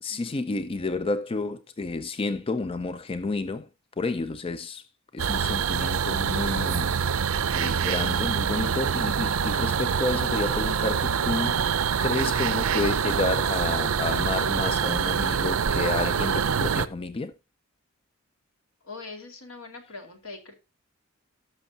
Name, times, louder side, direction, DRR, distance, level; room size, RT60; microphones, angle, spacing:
voice 1, 0.0-3.7 4.0-4.9 5.1-17.3, left 3 dB, 25° left, 0.4 m, -30 dB
sound 1, 5.2-16.9, right 7 dB, 75° right, 0.5 m, -25 dB
voice 2, 18.8-20.5, left 3 dB, 75° left, 2.4 m, -42 dB
18.5 x 6.3 x 2.7 m
head